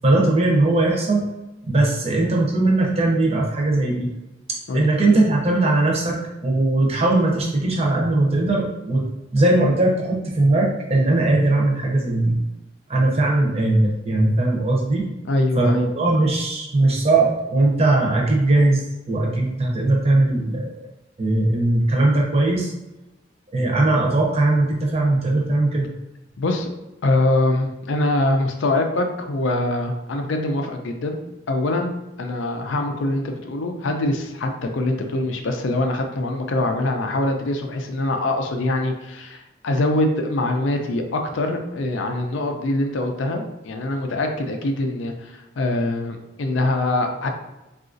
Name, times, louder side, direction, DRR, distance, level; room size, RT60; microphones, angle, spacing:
voice 1, 0.0-1.2 1.6-4.1 4.7-9.0 9.3-12.4 12.9-15.0 15.6-20.7 21.2-22.7 23.5-25.9, right 2 dB, 30° right, -2 dB, 0.6 m, -19 dB
voice 2, 15.2-15.9 26.4-26.7 27.0-31.2 31.5-47.3, left 2 dB, 70° left, 4 dB, 0.4 m, -23 dB
3.8 x 2.4 x 2.5 m, 1.0 s
head